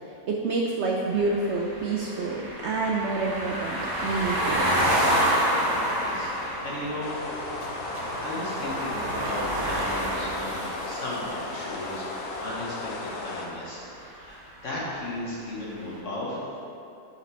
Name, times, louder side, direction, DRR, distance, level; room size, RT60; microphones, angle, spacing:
voice 1, 0.3-4.6, right 3 dB, 70° right, -2 dB, 0.6 m, -28 dB
sound 1, 1.1-13.2, equal, 20° right, 0.7 m, -29 dB
voice 2, 5.9-7.2 7.9-14.4 14.6-16.5, left 1 dB, 55° left, -6 dB, 1.2 m, -36 dB
sound 2, 7.0-13.5, left 3 dB, 80° left, 1.2 m, -36 dB
4.9 x 4.2 x 5.5 m, 2.6 s
omnidirectional pair, 1.6 m